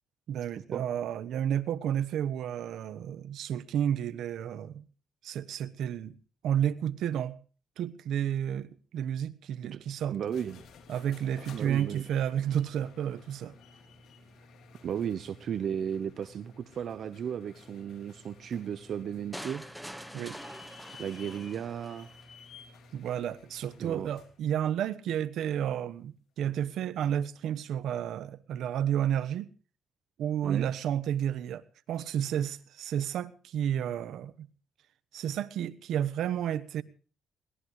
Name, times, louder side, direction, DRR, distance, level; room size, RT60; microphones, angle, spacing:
voice 1, 0.3-4.8 5.2-6.2 6.4-7.4 7.8-10.1 10.9-13.5 20.1-20.4 22.9-29.5 30.2-31.6 31.9-34.5 35.1-36.8, right 10 dB, 75° right, 1.1 m, -31 dB
sound 1, 10.1-24.4, left 4 dB, 75° left, 3.3 m, -54 dB
voice 2, 10.1-10.6 11.5-12.0 14.8-19.6 21.0-22.1 23.8-24.1 30.4-30.7, right 8 dB, 60° right, 1.0 m, -35 dB
sound 2, 19.3-22.3, equal, ahead, 1.4 m, -45 dB
22.5 x 18.5 x 3.2 m
cardioid pair, 90°, 0 cm